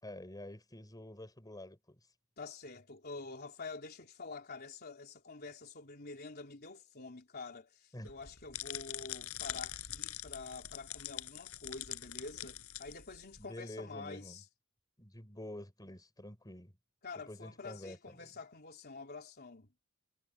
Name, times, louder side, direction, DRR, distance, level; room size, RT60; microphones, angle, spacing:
voice 1, 0.0-2.0 7.9-8.1 13.4-14.4 15.0-16.8 17.1-18.3, left 1 dB, 20° left, 5.2 m, -48 dB
voice 2, 2.4-14.5 17.0-19.7, left 3 dB, 50° left, 3.7 m, -47 dB
sound 1, 8.0-13.4, left 12 dB, 90° left, 7.2 m, -44 dB
head